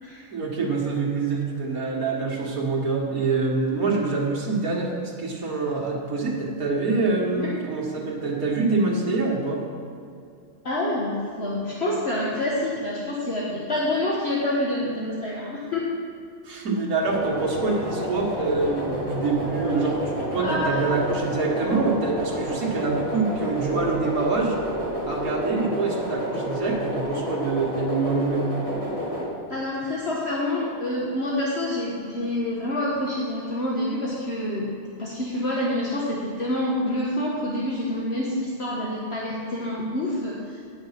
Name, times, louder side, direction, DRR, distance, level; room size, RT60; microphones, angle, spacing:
voice 1, 0.3-9.6 16.5-20.0 20.3-24.6 25.1-28.5, right 3 dB, 80° right, -2 dB, 2.1 m, -25 dB
voice 2, 10.6-15.8 20.4-21.0 29.5-34.7 35.0-40.6, left 1 dB, 50° left, -5 dB, 1.5 m, -27 dB
sound 1, 17.0-29.2, equal, 25° left, 2.8 m, -30 dB
9.7 x 8.5 x 5.7 m, 2.4 s
omnidirectional pair, 1.5 m